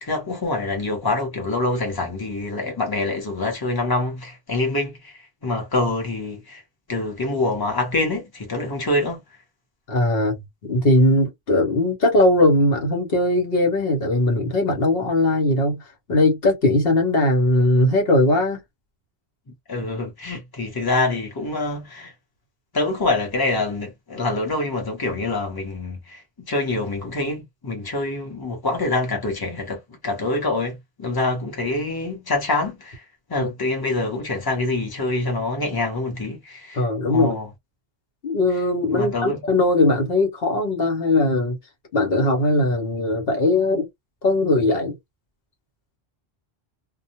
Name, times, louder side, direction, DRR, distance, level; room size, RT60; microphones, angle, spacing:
voice 1, 0.0-6.6 6.9-9.2 19.7-22.1 22.7-33.0 33.3-37.5 38.9-39.4, left 2 dB, 25° left, 0.9 m, -25 dB
voice 2, 9.9-15.8 16.1-18.6 33.4-33.5 36.7-37.4 38.2-41.6 41.9-43.9 44.2-45.0, left 1 dB, 70° left, 1.1 m, -19 dB
2.3 x 2.1 x 2.8 m
omnidirectional pair, 1.0 m